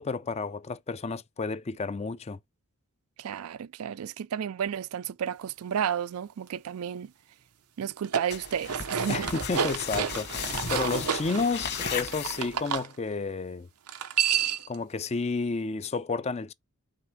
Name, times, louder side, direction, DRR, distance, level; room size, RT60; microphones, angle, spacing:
voice 1, 0.0-2.4 9.1-13.7 14.7-16.5, left 4 dB, 30° left, 0.4 m, -31 dB
voice 2, 3.2-7.1 7.8-9.3, right 8 dB, 70° right, 0.4 m, -32 dB
sound 1, 7.9-12.9 13.9-14.8, right 7 dB, 90° right, 0.8 m, -30 dB
sound 2, 8.3-12.8, left 6 dB, 45° left, 1.6 m, -36 dB
5.8 x 4.3 x 4.7 m
head